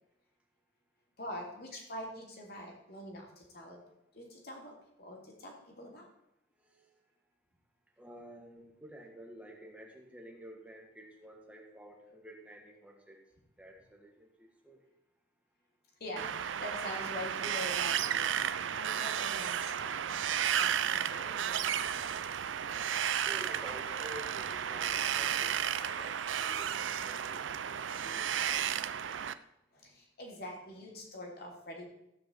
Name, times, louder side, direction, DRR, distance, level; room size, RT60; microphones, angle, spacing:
voice 1, 1.2-3.8 4.1-6.1 16.0-18.4 18.8-20.2 20.5-21.7 29.7-31.8, left 1 dB, 55° left, 0 dB, 3.2 m, -44 dB
voice 2, 6.6-7.0 8.0-13.2 13.6-14.9 23.2-29.4, right 1 dB, 5° right, 0 dB, 2.0 m, -51 dB
Wind, 16.2-29.3, right 9 dB, 85° right, 0.5 m, -33 dB
15.0 x 5.1 x 7.9 m, 0.84 s
head